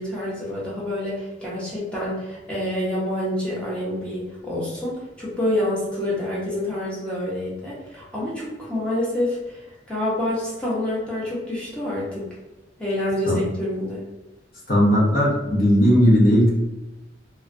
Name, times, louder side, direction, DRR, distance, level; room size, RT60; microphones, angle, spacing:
voice 1, 0.0-12.3 12.8-14.0, left 1 dB, 5° left, -7 dB, 0.6 m, -27 dB
voice 2, 14.7-16.5, equal, 50° left, -5 dB, 0.7 m, -17 dB
2.3 x 2.1 x 2.4 m, 1.0 s
head